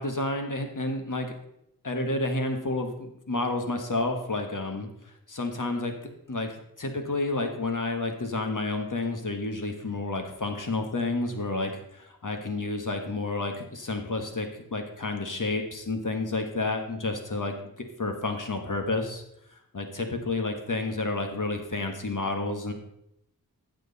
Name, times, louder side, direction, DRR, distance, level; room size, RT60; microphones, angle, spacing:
voice 1, 0.0-1.3 1.8-19.2 19.5-22.7, left 2 dB, 60° left, 4 dB, 1.6 m, -30 dB
15.0 x 6.5 x 4.1 m, 0.79 s
wide cardioid pair, 50°, 36 cm